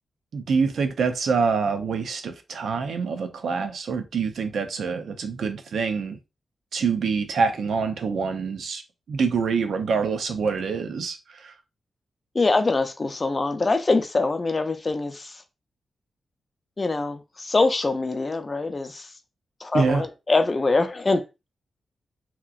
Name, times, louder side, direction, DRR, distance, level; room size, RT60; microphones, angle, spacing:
voice 1, 0.3-6.2 6.7-8.8 9.1-11.5 19.7-20.0, right 5 dB, 80° right, 0.5 m, -25 dB
voice 2, 12.3-15.4 16.8-19.1 19.6-21.2, left 3 dB, 30° left, 0.4 m, -24 dB
2.9 x 2.4 x 2.4 m
wide cardioid pair, 105°, 0 cm